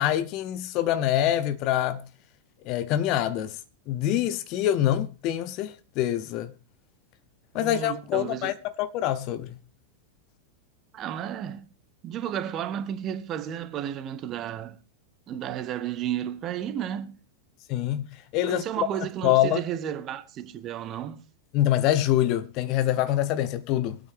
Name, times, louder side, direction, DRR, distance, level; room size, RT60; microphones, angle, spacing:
voice 1, 0.0-2.0 2.7-3.6 3.9-6.5 7.5-9.6 17.7-18.1 18.3-18.6 19.2-19.6 21.5-24.0, left 12 dB, 40° left, 1.0 m, -25 dB
voice 2, 7.5-8.5 10.9-11.7 12.0-14.8 15.3-17.2 18.4-21.2, right 10 dB, 30° right, 1.2 m, -33 dB
22.5 x 9.0 x 3.6 m
figure-of-eight pair, 90°, 0 cm